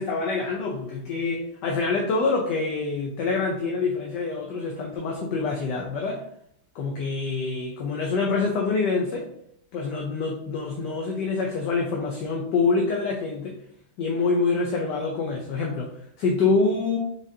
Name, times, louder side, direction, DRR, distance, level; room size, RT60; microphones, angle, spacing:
voice 1, 0.0-6.2 6.7-9.3 9.7-13.6 14.0-17.0, left 4 dB, 70° left, 0 dB, 1.1 m, -26 dB
4.7 x 3.9 x 2.7 m, 0.70 s
omnidirectional pair, 2.2 m